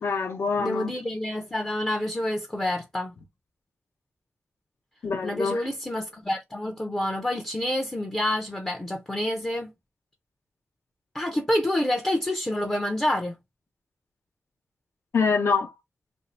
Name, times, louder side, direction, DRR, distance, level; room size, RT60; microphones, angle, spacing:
voice 1, 0.0-0.9 5.0-5.6 15.1-15.7, left 5 dB, 70° left, 0.8 m, -25 dB
voice 2, 0.6-3.1 5.2-9.7 11.1-13.4, left 1 dB, 15° left, 0.5 m, -28 dB
2.6 x 2.5 x 4.2 m
wide cardioid pair, 175°, 4 cm